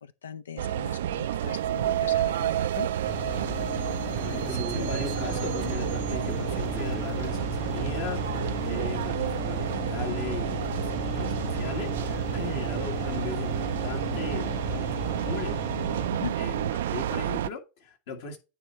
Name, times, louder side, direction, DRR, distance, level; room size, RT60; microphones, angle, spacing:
voice 1, 0.0-2.9 16.1-16.4, left 8 dB, 85° left, 0.4 m, -40 dB
sound 1, 0.6-17.5, right 11 dB, 75° right, 0.3 m, -30 dB
sound 2, 1.4-1.5 1.9-3.0 3.3-7.6 10.3-10.4 10.6-10.7 11.7-11.8 12.4-12.5 16.1-16.2 16.3-16.7, right 5 dB, 25° right, 0.5 m, -43 dB
sound 3, 3.1-16.1, left 8 dB, 40° left, 1.6 m, -36 dB
voice 2, 3.8-18.4, left 4 dB, 70° left, 1.8 m, -38 dB
9.5 x 3.5 x 4.3 m
hypercardioid pair, 90°, 0 cm